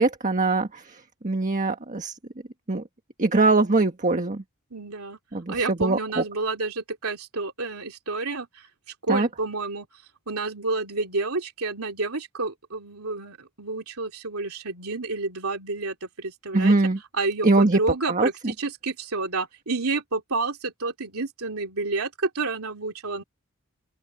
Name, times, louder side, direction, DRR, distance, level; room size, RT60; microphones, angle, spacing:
voice 1, 0.0-2.2 2.7-2.8 3.2-4.4 5.3-6.2 9.1-9.3 16.5-17.0 17.4-17.8 18.1-18.3, right 3 dB, 35° right, 1.4 m, -22 dB
voice 2, 4.7-5.2 5.5-16.7 17.1-23.2, right 3 dB, 75° right, 3.2 m, -30 dB
open air
head